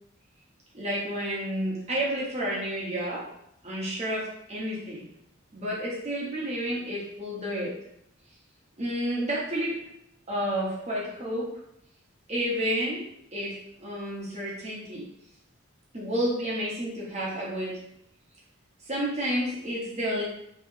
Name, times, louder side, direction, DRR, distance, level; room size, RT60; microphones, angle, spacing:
voice 1, 0.7-3.2 3.6-5.0 5.5-7.7 8.8-9.8 10.3-11.5 12.3-13.0 13.3-15.0 15.9-17.8 18.8-20.2, equal, 30° right, -5 dB, 1.2 m, -30 dB
4.4 x 3.2 x 2.9 m, 0.77 s
head